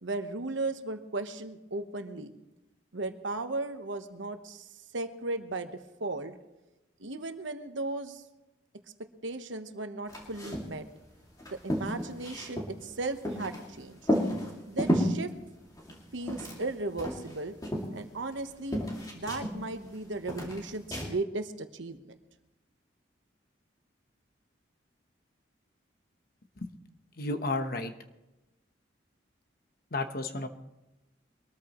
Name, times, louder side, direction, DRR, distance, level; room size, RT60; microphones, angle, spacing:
voice 1, 0.0-2.3 2.9-6.3 7.0-8.2 9.2-10.9 11.5-14.0 14.7-15.3 16.1-17.6 17.9-18.8 19.1-22.0, right 2 dB, 80° right, 8 dB, 1.1 m, -36 dB
sound 1, 10.1-10.8 11.0-11.1 11.4-13.7 14.0-15.2 15.8-16.7 17.0-18.4 18.7-19.9 20.3-21.1, equal, 20° left, 2.3 m, -32 dB
voice 2, 27.2-27.9 29.9-30.5, left 2 dB, 50° left, 8 dB, 1.0 m, -32 dB
22.5 x 13.5 x 3.1 m, 0.99 s
head